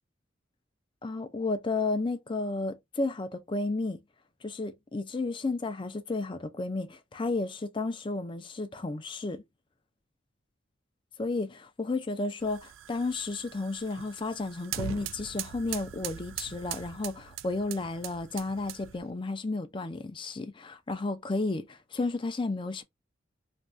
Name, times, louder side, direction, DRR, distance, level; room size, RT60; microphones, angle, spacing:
voice 1, 1.0-4.0 4.4-9.4 11.2-22.8, left 3 dB, 25° left, 0.4 m, -32 dB
sound 1, 12.4-19.1, right 10 dB, 85° right, 0.3 m, -41 dB
2.5 x 2.2 x 3.3 m
head